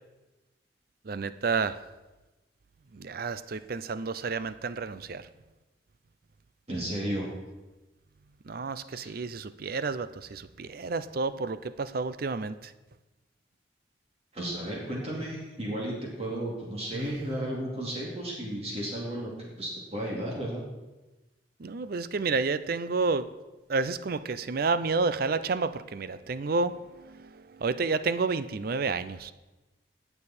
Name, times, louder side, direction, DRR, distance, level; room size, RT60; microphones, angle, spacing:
voice 1, 1.0-1.8 2.9-5.3 8.5-12.7 16.9-17.1 21.6-23.3 23.7-29.3, right 4 dB, 55° right, 14 dB, 0.5 m, -30 dB
voice 2, 6.7-7.3 8.9-9.1 14.3-20.6, right 1 dB, 35° right, -3 dB, 2.6 m, -34 dB
18.0 x 7.0 x 4.3 m, 1.1 s
head